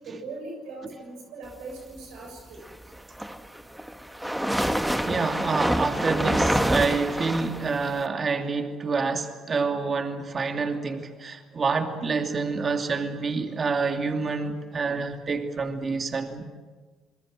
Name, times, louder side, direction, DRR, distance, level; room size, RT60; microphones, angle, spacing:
voice 1, 0.0-2.6, right 3 dB, 75° right, 7.0 m, -40 dB
sound 1, 3.0-8.1, equal, 5° right, 1.8 m, -26 dB
voice 2, 5.1-16.4, right 4 dB, 40° right, 2.6 m, -27 dB
27.5 x 22.0 x 7.8 m
supercardioid pair, 65°, 0 cm